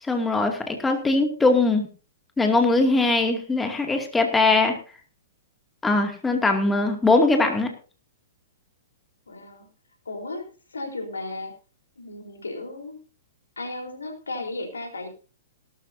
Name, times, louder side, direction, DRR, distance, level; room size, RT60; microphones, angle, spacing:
voice 1, 0.0-1.9 2.4-4.8 5.8-7.7, left 3 dB, 10° left, 4 dB, 2.4 m, -21 dB
voice 2, 9.3-9.7 10.1-11.5 12.0-13.0 13.6-15.1, left 2 dB, 80° left, 3 dB, 4.1 m, -35 dB
18.0 x 12.5 x 2.8 m, 0.37 s
figure-of-eight pair, 115°, 0 cm